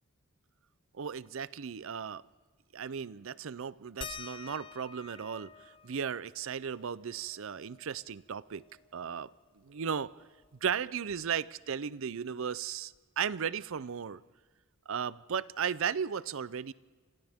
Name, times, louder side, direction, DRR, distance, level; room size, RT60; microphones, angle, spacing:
voice 1, 1.0-2.2 2.7-8.6 8.9-9.3 9.6-10.1 10.6-14.2 14.9-16.7, right 7 dB, 65° right, 0.5 m, -35 dB
sound 1, 4.0-9.1 9.5-9.6 9.9-11.7 12.9-13.0 13.8-13.9, left 5 dB, 25° left, 0.6 m, -50 dB
29.5 x 26.5 x 3.6 m
head